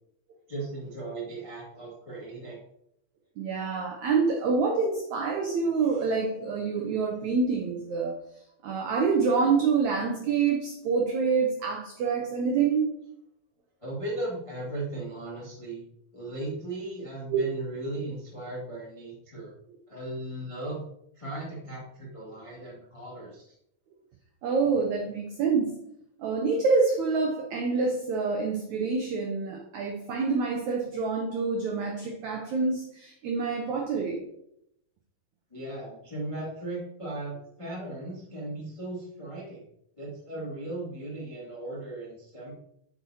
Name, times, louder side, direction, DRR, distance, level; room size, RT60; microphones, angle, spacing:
voice 1, 0.5-2.6 13.8-15.8 16.1-19.5 19.9-20.8 21.1-23.5 35.5-39.7 40.0-42.5, right 2 dB, 25° left, -6 dB, 0.7 m, -37 dB
voice 2, 3.4-8.2 8.6-12.9 17.3-17.4 24.4-25.8 26.2-34.2, right 5 dB, 85° right, 2 dB, 1.6 m, -27 dB
8.1 x 6.0 x 2.8 m, 0.75 s
omnidirectional pair, 4.3 m